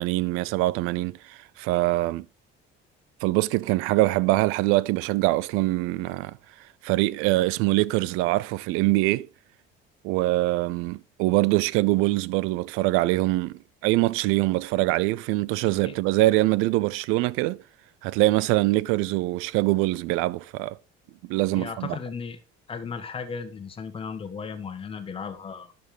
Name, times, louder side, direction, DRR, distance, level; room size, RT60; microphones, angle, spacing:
voice 1, 0.0-2.3 3.2-6.3 6.8-9.3 10.0-17.6 18.0-20.8 21.3-22.0, right 19 dB, 85° right, 0.5 m, -24 dB
voice 2, 15.6-15.9 21.5-22.4 22.7-25.7, left 5 dB, 25° left, 1.4 m, -35 dB
11.0 x 6.9 x 3.4 m
cardioid pair, 140°, 21 cm